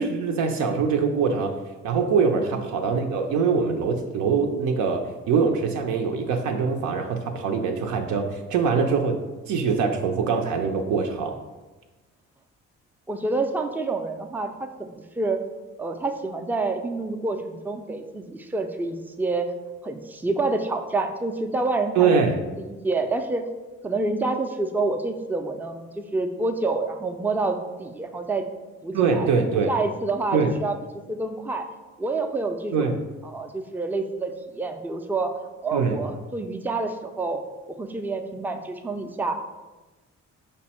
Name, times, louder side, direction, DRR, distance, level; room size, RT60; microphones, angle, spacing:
voice 1, 0.0-1.5 1.8-9.2 9.5-11.4 22.0-22.4 28.9-29.7 30.3-30.5 32.7-33.0 35.7-36.0, right 5 dB, 80° right, 3 dB, 0.5 m, -23 dB
voice 2, 13.1-15.4 15.8-19.5 19.8-22.2 22.6-23.4 23.8-28.4 28.8-29.3 29.7-30.7 31.1-31.7 32.0-32.9 33.2-35.3 35.6-37.4 37.7-39.4, right 3 dB, 5° right, 6 dB, 0.3 m, -28 dB
5.2 x 2.1 x 4.2 m, 1.2 s
cardioid pair, 90°, 30 cm